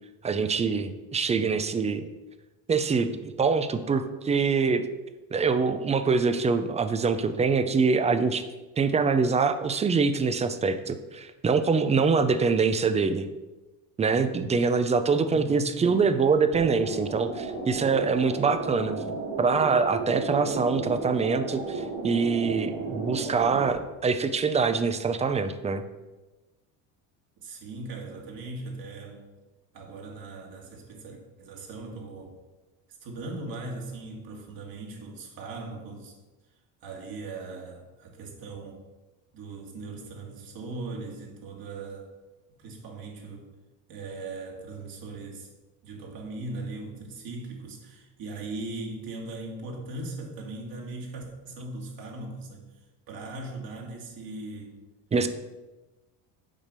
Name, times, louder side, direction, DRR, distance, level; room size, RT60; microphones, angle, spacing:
voice 1, 0.2-2.0 2.7-4.8 5.3-8.4 8.8-13.3 14.0-19.0 19.4-25.8 55.1-55.3, right 5 dB, 15° right, 11 dB, 0.4 m, -24 dB
voice 2, 15.3-15.8 27.4-29.2 29.7-32.4 33.0-36.1 36.8-38.8 39.3-42.1 42.6-43.5 43.9-45.5 45.8-52.6 53.1-54.8, right 2 dB, 55° right, 0 dB, 2.2 m, -39 dB
sound 1, 16.5-23.7, right 3 dB, 85° right, 2.7 m, -33 dB
7.3 x 5.0 x 6.6 m, 1.1 s
cardioid pair, 130°, 42 cm